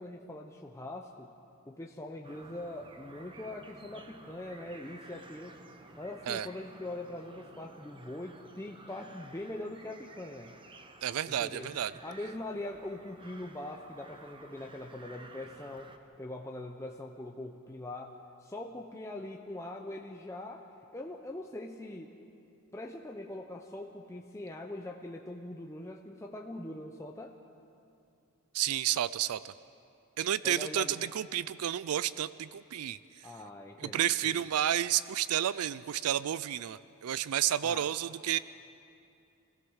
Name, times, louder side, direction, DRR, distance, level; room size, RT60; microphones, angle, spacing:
voice 1, 0.0-1.3 1.7-5.6 6.0-10.5 11.3-11.7 12.0-22.1 22.7-27.3 30.4-30.9 33.2-34.5 37.6-37.9, left 1 dB, 15° left, 1 dB, 0.7 m, -42 dB
sound 1, 2.2-16.0, right 2 dB, 25° right, 0.9 m, -53 dB
voice 2, 11.0-11.9 28.5-29.5 30.2-33.3 33.8-38.4, right 11 dB, 75° right, 17 dB, 0.4 m, -31 dB
26.0 x 16.0 x 6.3 m, 2.6 s
head